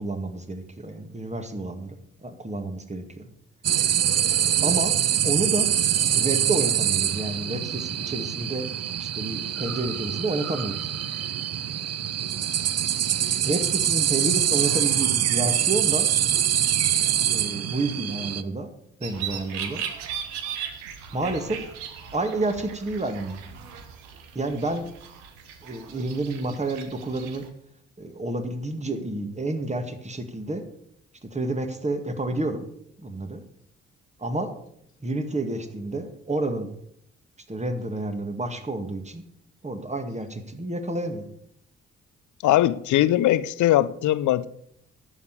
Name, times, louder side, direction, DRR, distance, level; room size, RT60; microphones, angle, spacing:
voice 1, 0.0-2.0 2.2-3.3 4.6-5.0 5.2-5.7 6.2-8.7 9.0-10.8 13.4-16.1 17.3-18.7 19.0-19.8 21.1-21.6 22.1-23.4 24.3-24.9 25.6-27.4 28.0-30.6 31.2-32.6 33.0-33.4 34.2-34.5 35.0-36.7 37.5-39.2 39.6-41.2, right 2 dB, 20° right, 2.1 m, -29 dB
sound 1, 3.6-18.4, right 10 dB, 50° right, 0.8 m, -24 dB
sound 2, 19.0-27.5, right 8 dB, 85° right, 1.2 m, -38 dB
voice 2, 42.4-44.5, left 14 dB, 65° left, 0.7 m, -20 dB
11.0 x 7.4 x 8.2 m
hypercardioid pair, 45°, 32 cm